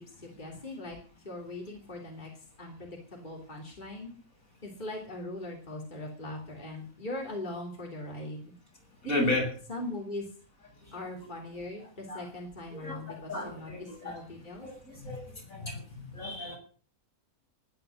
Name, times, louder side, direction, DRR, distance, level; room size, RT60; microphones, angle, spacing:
voice 1, 0.2-1.0 1.2-2.3 2.6-4.1 4.6-8.4 9.0-9.4 9.7-10.2 10.9-13.7 14.0-14.7, left 1 dB, 35° left, 0 dB, 3.3 m, -40 dB
voice 2, 9.0-9.5 11.2-11.3 12.1-12.3 12.7-14.2 14.6-16.6, left 2 dB, 70° left, 0 dB, 7.3 m, -34 dB
19.0 x 10.5 x 6.4 m, 0.42 s
omnidirectional pair, 1.5 m